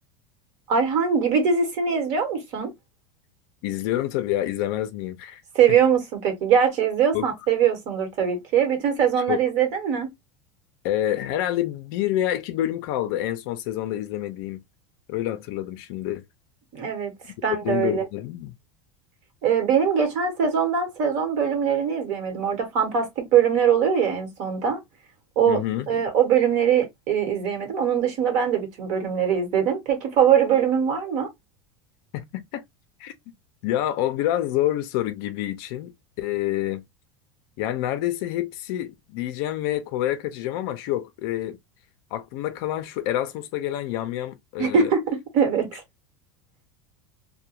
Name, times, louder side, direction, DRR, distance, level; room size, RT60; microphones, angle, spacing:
voice 1, 0.7-2.7 5.5-10.1 16.7-17.1 17.4-18.0 19.4-24.8 25.4-25.6 25.9-31.3 44.6-45.8, right 7 dB, 45° right, 1.1 m, -22 dB
voice 2, 3.6-5.4 7.1-7.3 9.3-9.4 10.8-14.6 15.1-16.2 17.4-18.5 25.5-25.9 32.1-32.6 33.0-33.1 33.6-35.9 36.2-36.8 37.6-41.6 42.1-44.9, left 13 dB, 50° left, 0.5 m, -27 dB
2.3 x 2.2 x 2.8 m
supercardioid pair, 165°, 15 cm